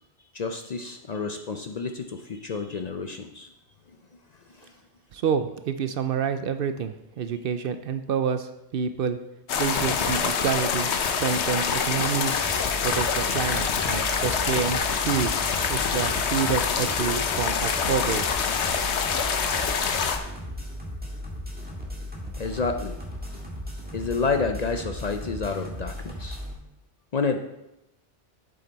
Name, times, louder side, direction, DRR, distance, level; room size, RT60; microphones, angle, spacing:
voice 1, 0.3-3.5 4.6-4.7 22.4-23.0 23.9-26.4 27.1-27.4, left 4 dB, 50° left, 5 dB, 0.5 m, -29 dB
voice 2, 5.1-9.2 9.6-12.4 12.8-15.4 15.7-18.4, right 7 dB, 65° right, 10 dB, 0.7 m, -28 dB
sound 1, 9.5-20.2, left 6 dB, 80° left, 1.0 m, -26 dB
sound 2, 12.4-26.5, left 1 dB, 10° right, 1.5 m, -36 dB
7.7 x 7.7 x 4.0 m, 0.89 s
omnidirectional pair, 1.1 m